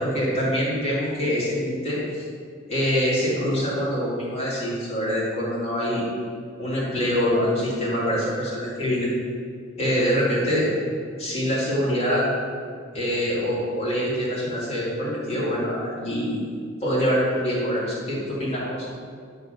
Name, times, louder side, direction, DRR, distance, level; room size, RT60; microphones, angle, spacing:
voice 1, 0.0-2.2 2.7-6.0 6.6-9.1 9.8-10.7 11.2-12.2 12.9-16.4 16.8-18.8, equal, 35° left, -8 dB, 2.5 m, -25 dB
10.0 x 4.4 x 6.6 m, 2.1 s
head